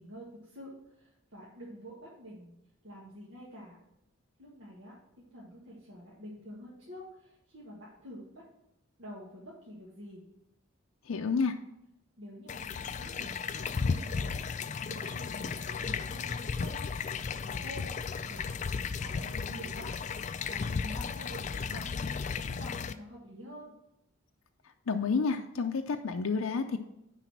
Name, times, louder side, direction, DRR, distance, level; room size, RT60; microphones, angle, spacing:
voice 1, 0.0-2.5 2.8-3.8 4.4-8.4 9.0-10.2 12.2-16.8 17.3-17.9 18.3-19.9 20.5-23.7, equal, 70° right, -6 dB, 1.7 m, -48 dB
voice 2, 11.1-11.5 24.9-26.8, left 4 dB, 90° left, 5 dB, 0.5 m, -30 dB
sound 1, 12.5-22.9, left 5 dB, 35° left, 0.3 m, -35 dB
10.0 x 4.1 x 5.9 m, 0.85 s
head